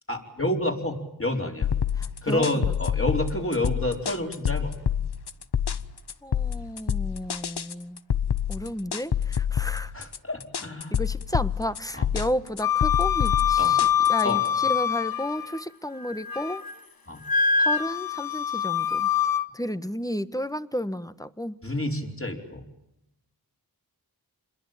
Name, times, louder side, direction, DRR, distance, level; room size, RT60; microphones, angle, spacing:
voice 1, 0.1-1.7 2.2-4.7 9.9-11.0 11.9-12.1 13.6-13.8 14.2-14.4 17.1-17.2 21.6-22.6, left 1 dB, 35° left, 3 dB, 4.7 m, -29 dB
sound 1, 1.6-14.5, left 8 dB, 90° left, 0.9 m, -27 dB
voice 2, 2.0-2.5 6.2-8.0 8.5-9.9 10.9-16.6 17.6-19.1 19.5-21.6, equal, 10° left, 13 dB, 1.2 m, -32 dB
Wind instrument woodwind instrument, 12.6-15.6 16.0-16.7 17.3-19.5, left 7 dB, 65° left, 1.4 m, -24 dB
27.5 x 21.5 x 9.1 m, 0.86 s
wide cardioid pair, 50°, 39 cm